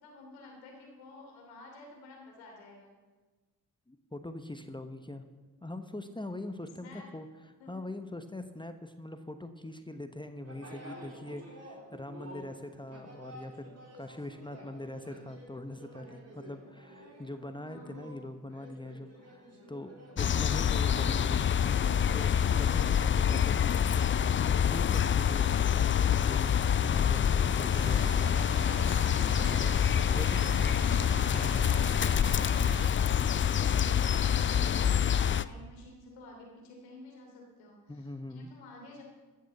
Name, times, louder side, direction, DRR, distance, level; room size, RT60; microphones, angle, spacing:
voice 1, 0.0-2.9 6.6-7.1 7.6-7.8 16.5-16.7 17.6-18.1 30.0-31.1 32.8-39.0, left 2 dB, 80° left, 0 dB, 3.1 m, -51 dB
voice 2, 3.9-5.2 5.6-7.3 7.7-23.8 24.4-25.5 26.2-28.3 29.4-30.4 31.3-31.6 37.9-38.5, left 1 dB, 10° left, 8 dB, 1.0 m, -42 dB
sound 1, 10.4-28.6, right 1 dB, 35° right, 4.0 m, -51 dB
sound 2, 20.2-35.4, left 8 dB, 25° left, 0.4 m, -26 dB
sound 3, 27.7-32.9, right 3 dB, 65° right, 2.5 m, -42 dB
14.5 x 6.7 x 6.7 m, 1.3 s
hypercardioid pair, 45°, 45 cm